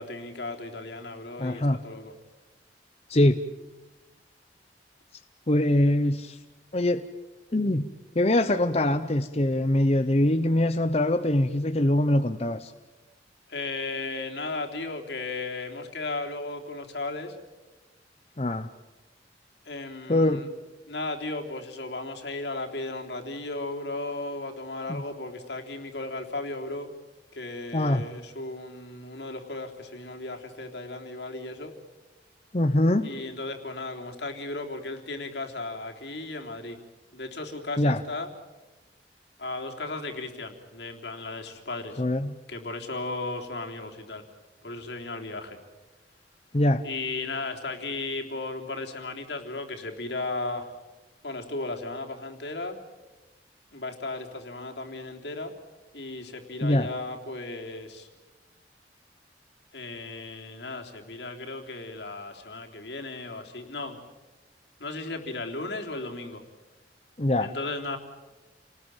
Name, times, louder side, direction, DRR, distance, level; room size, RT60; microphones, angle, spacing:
voice 1, 0.0-2.1 13.5-17.4 19.7-20.5 20.9-26.9 27.3-31.7 33.0-36.8 37.1-38.3 39.4-42.0 42.5-44.2 44.6-45.6 46.8-50.7 51.2-52.8 53.7-55.5 55.9-58.1 59.7-64.0 64.8-66.4 67.4-68.0, left 2 dB, 75° left, 3 dB, 3.5 m, -35 dB
voice 2, 1.4-1.8 3.1-3.4 5.5-6.4 6.7-7.1 7.5-7.9 8.1-12.7 18.4-18.7 20.1-20.5 24.9-25.0 27.7-28.0 32.5-33.1 37.8-38.0 42.0-42.4 46.5-46.8 56.6-56.9 67.2-67.5, left 1 dB, 35° left, 9 dB, 0.9 m, -23 dB
29.5 x 19.5 x 9.1 m, 1.1 s
head